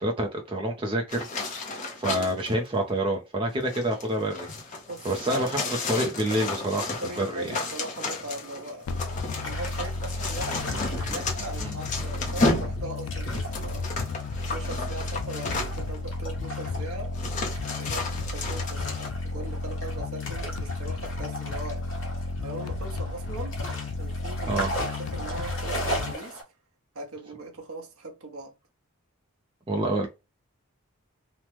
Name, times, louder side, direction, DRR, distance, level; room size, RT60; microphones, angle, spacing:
voice 1, 0.0-1.3 2.0-4.8 5.0-5.6 5.9-7.5 11.6-11.8 24.5-24.7 29.7-30.1, right 1 dB, 25° right, 0.4 m, -28 dB
sound 1, 1.1-2.5 3.5-16.0 16.6-16.7 17.1-19.1, left 3 dB, 35° left, 0.6 m, -33 dB
voice 2, 4.9-5.5 7.0-8.9 9.4-13.8 14.5-17.1 17.8-21.9 22.4-23.5 24.0-26.4 26.9-28.5, right 2 dB, 70° right, 0.8 m, -39 dB
sound 2, 8.9-26.1, left 3 dB, 85° left, 0.4 m, -33 dB
sound 3, 8.9-26.4, equal, 60° left, 1.1 m, -39 dB
3.0 x 2.0 x 3.2 m
head